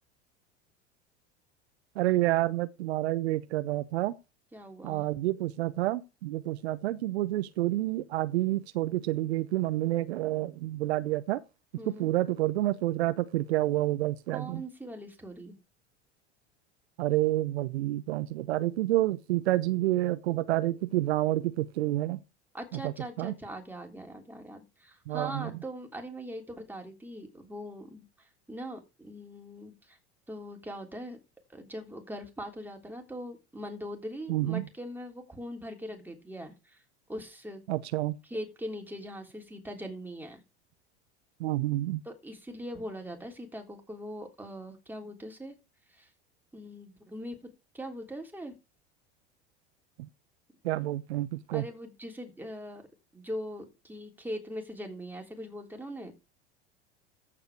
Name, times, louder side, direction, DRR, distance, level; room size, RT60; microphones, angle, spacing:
voice 1, 2.0-4.1 4.8-11.4 12.0-14.6 17.0-22.2 22.8-22.9 23.2-23.3 25.1-25.5 34.3-34.6 37.7-38.2 41.4-42.0 50.6-51.6, right 16 dB, 70° right, 0.8 m, -29 dB
voice 2, 4.5-5.1 11.8-12.1 14.3-15.6 22.5-30.0 30.3-31.2 31.5-36.8 37.1-37.6 38.2-40.4 42.0-45.5 45.9-46.1 46.5-47.4 47.7-48.5 51.5-52.9 53.1-56.1, equal, 5° right, 3.3 m, -41 dB
14.5 x 4.9 x 5.0 m
hypercardioid pair, 80°, 33 cm